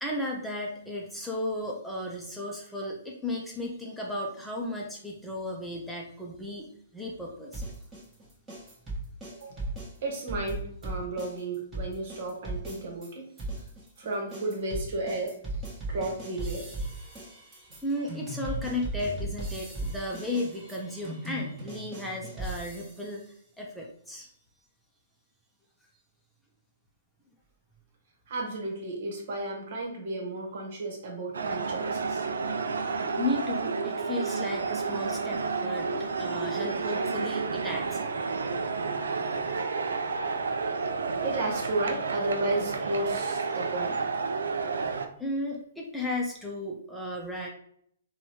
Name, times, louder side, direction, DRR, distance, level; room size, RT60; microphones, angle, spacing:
voice 1, 0.0-7.6 17.8-23.2 23.6-24.3 33.2-38.1 38.4-38.5 45.2-47.5, left 1 dB, ahead, -3 dB, 0.6 m, -34 dB
sound 1, 7.5-13.1 13.4-23.1, right 2 dB, 15° right, 1.3 m, -37 dB
voice 2, 9.3-9.7 10.0-13.3 14.0-15.4 15.9-16.7 28.3-32.3 41.2-44.0, right 2 dB, 55° right, 1 dB, 1.2 m, -33 dB
sound 2, 31.3-45.1, right 4 dB, 80° right, 0.4 m, -31 dB
4.0 x 2.3 x 2.9 m, 0.66 s
hypercardioid pair, 130°, 0 cm